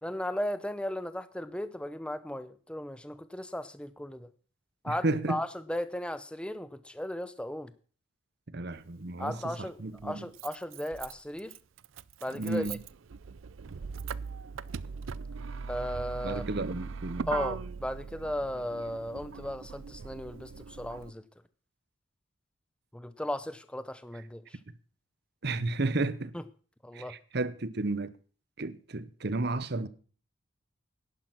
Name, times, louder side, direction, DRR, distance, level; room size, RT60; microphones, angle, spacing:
voice 1, 0.0-4.3 4.8-7.7 9.2-9.8 10.0-11.5 12.2-12.8 15.7-16.4 17.3-21.2 22.9-24.6 26.3-26.4 26.8-27.1, left 1 dB, 5° left, 0.6 m, -36 dB
voice 2, 4.9-5.4 8.5-10.3 12.3-12.8 16.2-17.3 25.4-26.3 26.9-28.1 28.6-29.9, right 2 dB, 50° right, 0.9 m, -32 dB
Motor vehicle (road), 8.7-8.8 10.0-21.1, right 5 dB, 70° right, 0.5 m, -40 dB
11.0 x 10.5 x 6.0 m
head